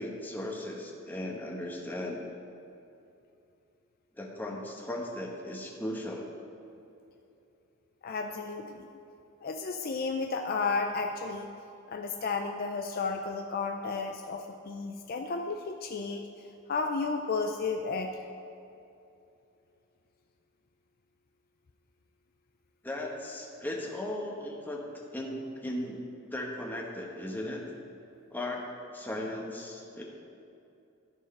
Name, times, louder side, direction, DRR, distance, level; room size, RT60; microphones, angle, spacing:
voice 1, 0.0-2.2 4.2-6.3 22.8-24.9 25.1-26.0 26.3-27.6 28.3-28.6 28.9-30.0, left 1 dB, 10° left, -1 dB, 1.1 m, -37 dB
voice 2, 8.0-8.9 9.4-11.5 11.9-16.2 16.7-18.2, left 4 dB, 45° left, 4 dB, 0.4 m, -33 dB
13.5 x 4.7 x 5.4 m, 2.7 s
head